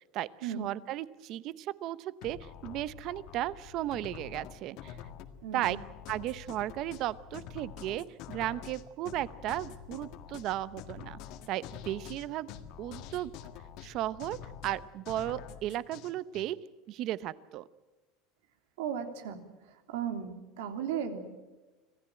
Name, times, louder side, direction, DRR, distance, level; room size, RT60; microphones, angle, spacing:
voice 1, 0.1-5.0 5.5-5.8 6.1-11.2 11.5-12.5 12.8-13.3 13.8-16.6 16.9-17.6, right 14 dB, 40° right, 17 dB, 0.7 m, -35 dB
sound 1, 2.2-16.5, left 9 dB, 50° left, 1.7 m, -46 dB
voice 2, 18.8-19.4 19.9-21.2, right 8 dB, 85° right, 7 dB, 3.2 m, -35 dB
26.0 x 17.5 x 9.1 m, 1.2 s
cardioid pair, 165°, 0 cm